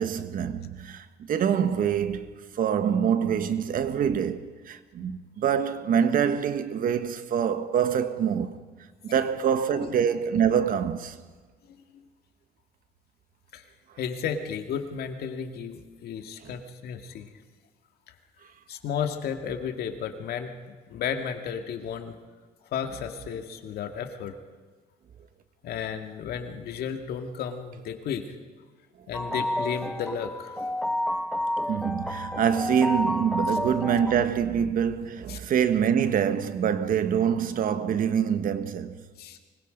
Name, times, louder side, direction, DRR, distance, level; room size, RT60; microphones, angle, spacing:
voice 1, 0.0-8.6 9.0-11.2 16.4-16.5 29.3-29.4 31.7-39.0, right 8 dB, 55° right, 1.4 m, -25 dB
voice 2, 14.0-17.3 18.7-20.5 20.9-22.1 22.7-24.4 25.6-28.3 29.1-30.6 35.3-35.4 39.2-39.4, left 7 dB, 65° left, 2.2 m, -33 dB
sound 1, 29.1-34.2, left 1 dB, 5° left, 1.1 m, -30 dB
24.5 x 21.0 x 5.2 m
cardioid pair, 110°, 17 cm